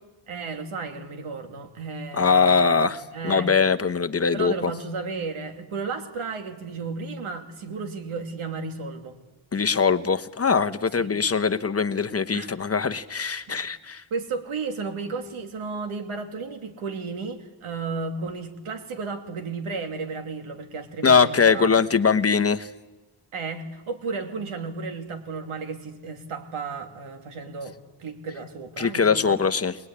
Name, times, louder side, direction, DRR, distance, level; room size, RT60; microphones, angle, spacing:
voice 1, 0.3-3.5 4.3-9.2 11.0-11.1 12.3-12.5 13.5-13.6 14.1-21.8 23.3-29.4, right 4 dB, 90° right, 5 dB, 3.1 m, -33 dB
voice 2, 2.1-4.7 9.5-14.0 21.0-22.7 28.8-29.8, left 5 dB, 30° left, 8 dB, 1.0 m, -22 dB
23.5 x 20.0 x 9.9 m, 1.1 s
wide cardioid pair, 130°, 48 cm